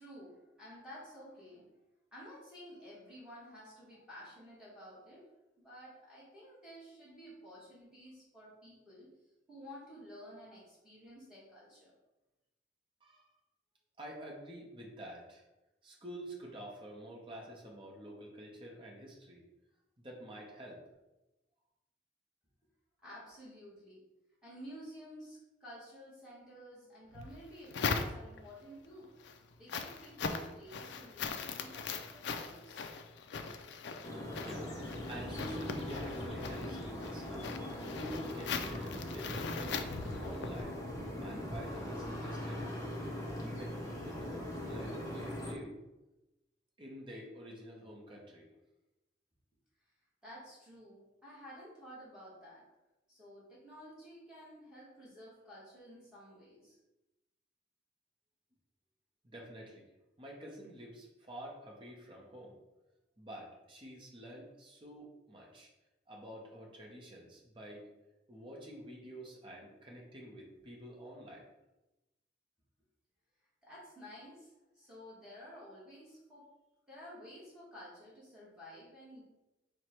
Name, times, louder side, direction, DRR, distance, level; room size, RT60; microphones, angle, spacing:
voice 1, 0.0-1.7 2.1-5.3 5.6-9.1 9.5-11.9 23.0-24.0 24.4-29.1 29.6-32.9 50.2-52.7 53.1-56.8 73.6-76.5 76.9-79.2, equal, 5° right, -9 dB, 1.4 m, -52 dB
voice 2, 14.0-15.4 15.8-19.4 20.0-20.8 34.3-34.8 35.1-37.5 38.0-39.8 40.2-40.8 41.2-42.8 43.4-45.8 46.8-48.5 59.2-59.8 60.2-62.5 63.2-65.7 66.1-67.8 68.3-71.4, equal, 25° right, -2 dB, 0.8 m, -48 dB
sound 1, 27.1-28.6 29.0-40.6, left 5 dB, 70° left, 0.4 m, -40 dB
sound 2, 34.0-45.5, left 1 dB, 20° left, 0.6 m, -41 dB
4.5 x 2.2 x 4.4 m, 1.0 s
head